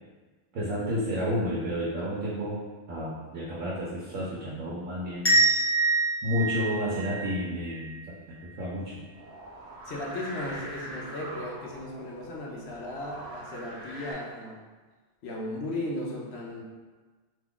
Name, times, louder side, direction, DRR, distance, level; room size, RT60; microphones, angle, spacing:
voice 1, 0.5-2.6 2.9-5.4 6.2-8.0 8.6-9.0, equal, 90° right, -6 dB, 1.1 m, -31 dB
sound 1, 5.2-8.0, right 2 dB, 15° left, 0.5 m, -25 dB
sound 2, 9.1-14.1, right 1 dB, 65° right, 1.0 m, -43 dB
voice 2, 9.8-14.6 15.2-16.6, left 1 dB, 65° left, -2 dB, 0.8 m, -36 dB
2.9 x 2.3 x 3.6 m, 1.4 s
omnidirectional pair, 1.3 m